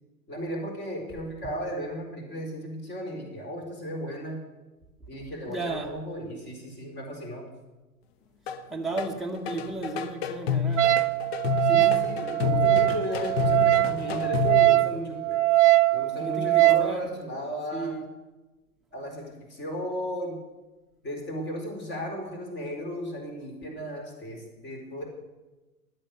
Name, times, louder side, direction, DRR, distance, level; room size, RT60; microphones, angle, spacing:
voice 1, 0.3-4.4 5.1-7.4 11.6-15.4 15.9-18.0 18.9-20.4 21.0-25.0, equal, 25° left, 4.6 m, -35 dB
voice 2, 5.4-6.0 8.7-10.9 16.2-17.1 17.7-18.0, right 3 dB, ahead, 1.2 m, -34 dB
sound 1, 8.5-8.6 9.0-14.7, left 6 dB, 45° left, 1.0 m, -29 dB
Wind instrument woodwind instrument, 10.8-16.9, right 18 dB, 55° right, 0.5 m, -22 dB
15.5 x 12.0 x 6.6 m
figure-of-eight pair, 100°, 45 cm